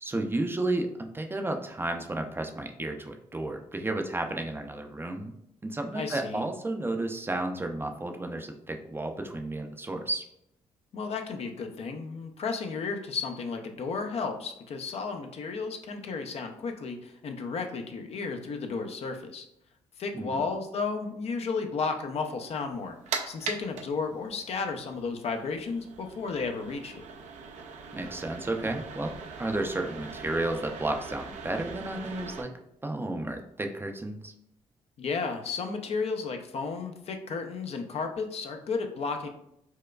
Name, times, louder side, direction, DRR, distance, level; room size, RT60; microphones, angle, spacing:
voice 1, 0.0-5.3 5.6-10.2 20.1-20.4 27.9-32.5 32.8-34.3, right 2 dB, 20° right, 4 dB, 0.4 m, -32 dB
voice 2, 5.9-6.4 10.9-19.5 20.0-23.0 23.3-27.1 35.0-39.3, left 4 dB, 55° left, 5 dB, 0.5 m, -33 dB
sound 1, 22.7-32.4, right 5 dB, 70° right, 0.5 m, -41 dB
4.5 x 2.2 x 2.2 m, 0.78 s
supercardioid pair, 60°, 13 cm